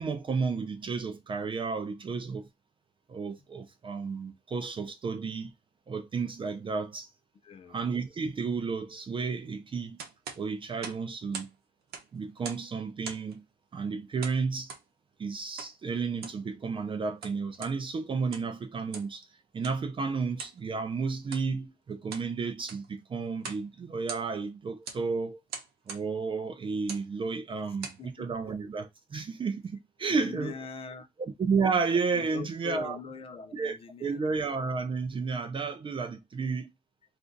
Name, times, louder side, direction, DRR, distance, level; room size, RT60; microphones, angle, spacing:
voice 1, 0.0-2.5 3.1-5.5 5.9-7.1 7.7-10.0 10.4-11.5 12.1-13.4 13.7-14.7 15.2-19.3 19.5-25.4 25.9-30.6 31.2-33.0 33.5-36.7, right 4 dB, 30° right, 0.5 m, -32 dB
voice 2, 7.4-7.8 28.0-28.4 30.0-31.1 32.1-34.2, left 6 dB, 35° left, 0.6 m, -43 dB
sound 1, 10.0-11.6 11.8-12.7 13.0-13.4 14.2-14.9 15.6-15.8 16.1-16.4 17.0-17.8 18.2-18.6 18.9-19.2 19.6-19.8 20.4-20.6 21.2-21.5 21.9-22.3 22.6-22.9 23.4-23.7 23.9-24.5 24.9-25.0 25.5-26.1 26.8-27.1 27.6-28.0, right 5 dB, 70° right, 0.8 m, -42 dB
2.5 x 2.4 x 3.8 m
cardioid pair, 110°, 17 cm